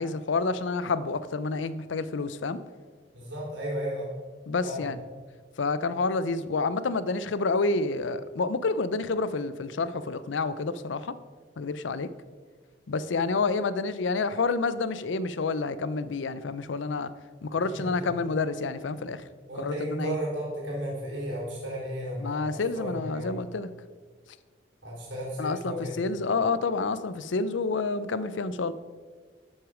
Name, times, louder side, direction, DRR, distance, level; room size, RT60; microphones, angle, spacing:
voice 1, 0.0-2.6 4.5-5.0 5.6-11.1 11.6-12.1 12.9-17.1 17.4-19.2 19.6-20.2 22.2-23.7 25.4-28.7, left 3 dB, 85° left, 15 dB, 0.5 m, -29 dB
voice 2, 3.1-4.1 4.6-4.8 17.7-18.1 19.5-23.4 24.8-26.0, equal, 90° right, -4 dB, 3.5 m, -34 dB
12.0 x 6.3 x 4.9 m, 1.5 s
head